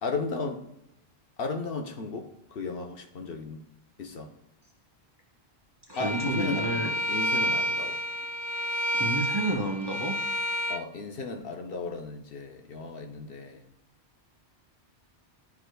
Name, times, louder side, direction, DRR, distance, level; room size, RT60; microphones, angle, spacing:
voice 1, 0.0-0.6 1.4-3.6 4.0-4.3 6.0-8.0 10.7-13.6, left 4 dB, 60° left, 0.9 m, -35 dB
Bowed string instrument, 5.9-10.8, equal, 40° left, 0.4 m, -30 dB
voice 2, 5.9-7.2 8.9-10.2, right 1 dB, 25° right, 0.8 m, -30 dB
11.5 x 4.8 x 2.2 m
omnidirectional pair, 1.1 m